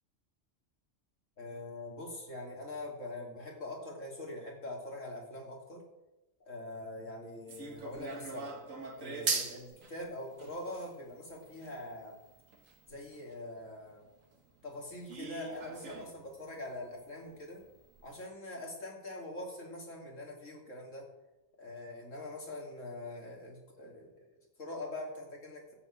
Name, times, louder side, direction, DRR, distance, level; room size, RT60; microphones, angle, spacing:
voice 1, 1.4-5.8 6.5-8.5 9.0-12.2 12.9-14.0 14.6-17.6 18.0-21.1 21.6-25.7, left 1 dB, 80° left, -1 dB, 3.4 m, -43 dB
sound 1, 7.5-13.3 13.8-13.9 14.3-14.4 15.1-16.3 16.5-16.6 16.9-17.0 17.6-17.7 17.9-18.1, right 4 dB, 85° right, 2.0 m, -40 dB
13.5 x 8.6 x 7.3 m, 0.99 s
omnidirectional pair, 1.3 m